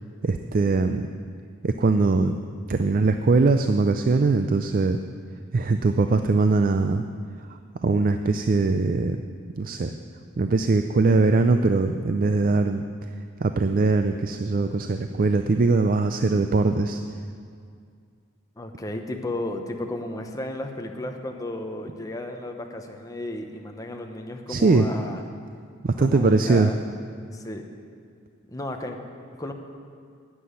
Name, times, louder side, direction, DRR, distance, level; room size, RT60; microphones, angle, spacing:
voice 1, 0.2-1.1 1.6-2.4 2.7-5.0 5.5-7.0 7.5-9.2 9.6-10.0 10.4-12.9 13.4-17.0 24.5-24.9 25.8-26.7, right 3 dB, 45° right, 7 dB, 0.4 m, -21 dB
voice 2, 18.6-25.2 26.0-26.8 27.3-27.7 28.5-29.0 29.4-29.5, left 1 dB, 15° left, 3 dB, 0.9 m, -34 dB
10.0 x 7.6 x 9.5 m, 2.2 s
head